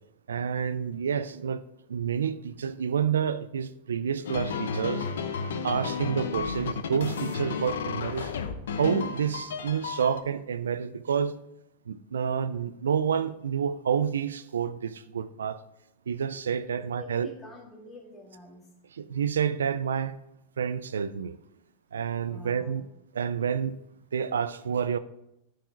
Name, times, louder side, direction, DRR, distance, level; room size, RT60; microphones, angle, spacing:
voice 1, 0.3-1.6 1.9-5.1 5.6-8.3 8.8-11.4 11.9-15.6 16.1-17.3 19.0-20.2 20.6-21.3 21.9-22.8 23.1-23.8 24.1-25.0, right 7 dB, 90° right, 0.4 m, -29 dB
sound 1, 4.2-10.2, left 6 dB, 80° left, 0.7 m, -32 dB
voice 2, 16.7-18.6 22.3-22.9, left 1 dB, 20° left, 2.1 m, -47 dB
9.2 x 4.8 x 4.5 m
hypercardioid pair, 110°, 0 cm